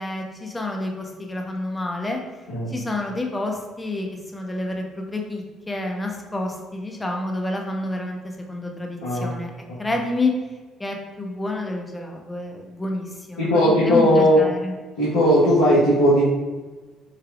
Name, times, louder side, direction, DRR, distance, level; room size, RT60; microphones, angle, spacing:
voice 1, 0.0-2.2 2.7-4.1 4.3-9.5 9.8-10.3 10.8-14.7, left 2 dB, 20° left, 1 dB, 1.0 m, -29 dB
voice 2, 13.4-14.4 15.0-16.2, equal, 80° left, -10 dB, 1.2 m, -17 dB
6.7 x 3.2 x 2.4 m, 1.3 s
hypercardioid pair, 55°, 0 cm